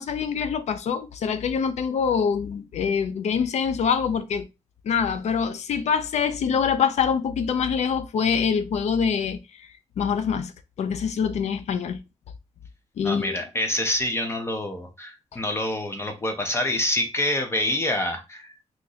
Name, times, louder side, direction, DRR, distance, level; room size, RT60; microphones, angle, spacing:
voice 1, 0.0-4.5 4.8-9.7 10.0-10.5 10.8-12.0 13.0-13.4, left 6 dB, 80° left, 0.5 m, -25 dB
voice 2, 13.0-18.5, left 1 dB, 20° left, 0.6 m, -26 dB
2.9 x 2.5 x 3.9 m
wide cardioid pair, 150°, 12 cm